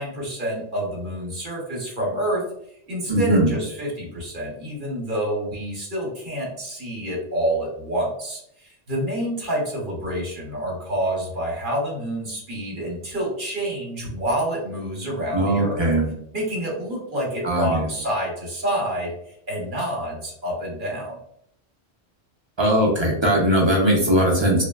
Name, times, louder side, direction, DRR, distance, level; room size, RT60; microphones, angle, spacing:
voice 1, 0.0-2.5 2.9-15.8 16.3-19.1 19.5-21.2, right 1 dB, 55° right, -2 dB, 1.0 m, -28 dB
voice 2, 3.1-3.5 15.3-16.1 17.4-17.9 22.6-24.6, right 1 dB, 35° right, -3 dB, 0.5 m, -19 dB
3.0 x 2.2 x 2.3 m, 0.70 s
omnidirectional pair, 1.1 m